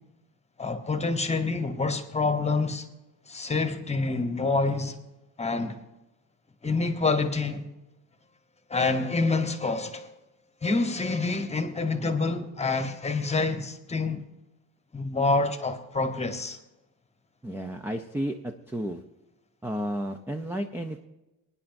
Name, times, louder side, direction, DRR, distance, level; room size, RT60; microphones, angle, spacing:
voice 1, 0.6-2.9 3.3-5.0 5.4-5.8 6.6-7.7 8.7-10.1 10.6-14.2 14.9-16.6, left 3 dB, 15° left, 1.1 m, -27 dB
voice 2, 17.4-18.4 18.7-19.0 19.6-21.1, equal, 5° right, 0.5 m, -32 dB
23.5 x 9.8 x 2.6 m
cardioid pair, 140°, 37 cm